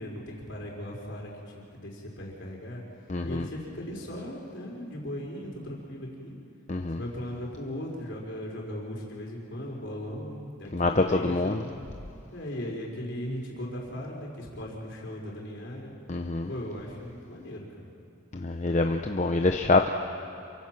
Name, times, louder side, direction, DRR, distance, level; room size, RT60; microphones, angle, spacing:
voice 1, 0.0-2.8 3.2-6.4 6.9-11.6 12.3-15.9 16.4-17.9, left 1 dB, 55° left, -1 dB, 4.5 m, -38 dB
voice 2, 3.1-3.5 6.7-7.0 10.7-11.6 16.1-16.5 18.3-19.9, left 2 dB, 35° left, 5 dB, 0.7 m, -25 dB
28.0 x 23.5 x 6.0 m, 2.8 s
head